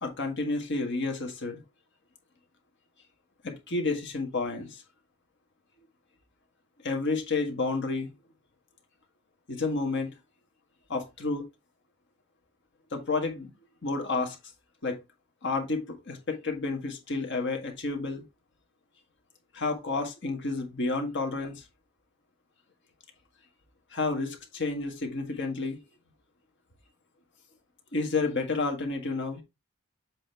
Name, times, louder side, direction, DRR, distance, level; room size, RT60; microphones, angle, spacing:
voice 1, 0.0-1.6 3.4-4.8 6.8-8.1 9.5-10.1 10.9-11.4 12.9-13.5 13.8-14.4 14.8-15.0 15.4-18.2 19.5-21.6 23.9-25.8 27.9-29.4, left 3 dB, 55° left, 1.7 m, -30 dB
7.6 x 3.1 x 4.4 m
head